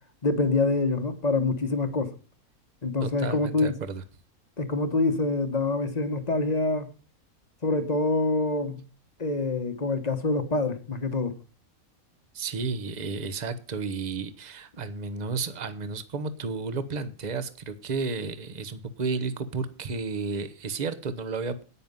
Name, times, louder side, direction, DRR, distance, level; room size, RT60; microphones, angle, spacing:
voice 1, 0.2-2.1 2.8-3.8 4.6-6.9 7.6-8.8 9.2-11.3, left 3 dB, 30° left, 1.3 m, -26 dB
voice 2, 3.0-4.0 12.3-21.6, right 4 dB, 30° right, 1.1 m, -32 dB
10.0 x 9.3 x 5.4 m
omnidirectional pair, 1.5 m